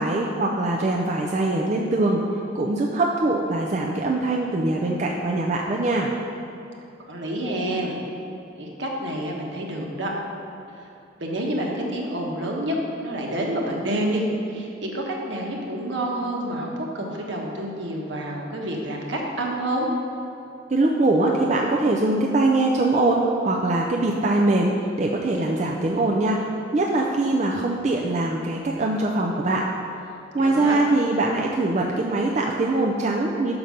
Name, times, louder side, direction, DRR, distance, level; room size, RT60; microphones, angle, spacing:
voice 1, 0.0-2.2 2.5-6.1 20.7-26.4 26.7-29.6 30.3-33.5, right 2 dB, 35° right, -1 dB, 0.4 m, -22 dB
voice 2, 7.1-8.0 8.6-10.1 10.8-10.9 11.2-12.8 13.0-19.9 30.4-30.8, right 1 dB, 70° right, -1 dB, 1.2 m, -28 dB
5.9 x 5.2 x 6.4 m, 2.8 s
head